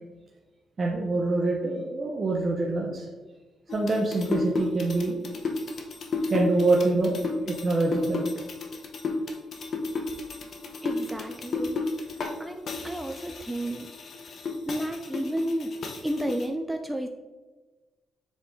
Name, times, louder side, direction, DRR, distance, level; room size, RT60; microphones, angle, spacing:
voice 1, 0.8-3.1 3.7-5.3 6.3-8.3, right 2 dB, 40° right, -1 dB, 0.8 m, -25 dB
sound 1, 3.7-12.4 12.7-16.5, left 3 dB, 55° left, 0.9 m, -32 dB
voice 2, 10.8-11.8 12.4-13.9 14.7-17.1, right 1 dB, 5° right, 5 dB, 0.4 m, -32 dB
7.1 x 3.6 x 3.7 m, 1.3 s
cardioid pair, 100°, 0 cm